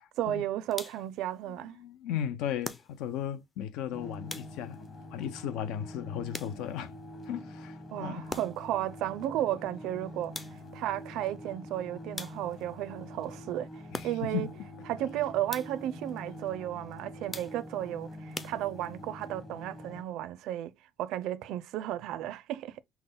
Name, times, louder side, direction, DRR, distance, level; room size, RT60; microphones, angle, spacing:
voice 1, 0.2-1.8 7.9-10.3 10.7-14.5 14.9-20.7 21.0-22.8, right 12 dB, 70° right, 0.5 m, -34 dB
sound 1, 0.7-1.2 2.6-3.3 4.3-4.9 6.3-6.9 8.3-8.8 10.3-10.9 12.2-12.7 13.9-14.5 15.5-16.0 17.3-17.8 18.3-19.1, left 3 dB, 15° left, 0.4 m, -43 dB
voice 2, 1.5-4.8 5.1-6.9 7.2-8.3 13.9-14.5, left 9 dB, 90° left, 0.6 m, -36 dB
sound 2, 3.9-20.0, left 1 dB, 30° left, 1.0 m, -45 dB
5.8 x 2.1 x 3.8 m
cardioid pair, 155°, 0 cm